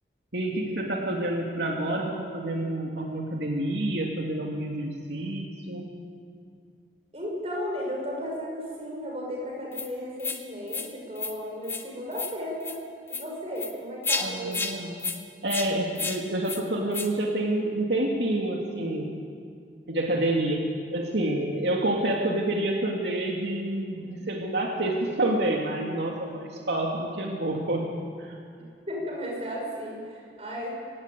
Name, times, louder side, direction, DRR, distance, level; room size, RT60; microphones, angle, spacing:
voice 1, 0.3-5.8 14.2-15.0 15.4-19.1 19.9-27.9 28.2-28.4, right 1 dB, 80° right, 0 dB, 2.5 m, -28 dB
voice 2, 7.1-12.8 13.1-14.7 23.9-24.2 28.9-30.7, equal, 35° right, -2 dB, 6.6 m, -34 dB
sound 1, 9.7-9.9 10.2-10.4 10.7-10.9 11.2-11.3 11.6-11.8 12.1-12.3 12.6-12.8 13.1-13.2 13.6-13.7 14.0-14.2 14.5-14.7 15.0-15.2 15.5-15.7 16.0-16.2 16.4-16.6 16.9-17.1, left 4 dB, 15° left, 1.3 m, -31 dB
26.5 x 17.5 x 8.3 m, 2.3 s
head